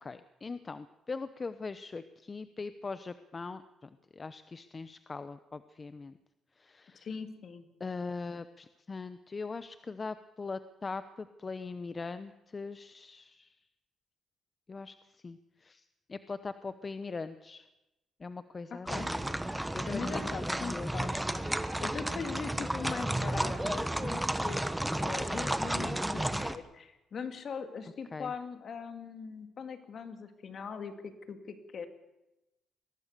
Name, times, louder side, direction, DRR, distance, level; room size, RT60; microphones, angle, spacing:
voice 1, 0.0-6.2 6.6-7.1 7.8-13.5 14.7-17.7 18.2-19.3 19.7-20.9 28.1-28.3, left 4 dB, 30° left, 12 dB, 0.9 m, -41 dB
voice 2, 6.9-7.7 18.9-19.1 19.9-21.3 21.8-31.9, left 5 dB, 55° left, 8 dB, 2.5 m, -41 dB
sound 1, 18.9-26.6, right 1 dB, 5° right, 1.2 m, -32 dB
22.5 x 17.5 x 6.8 m, 0.96 s
cardioid pair, 90°, 0 cm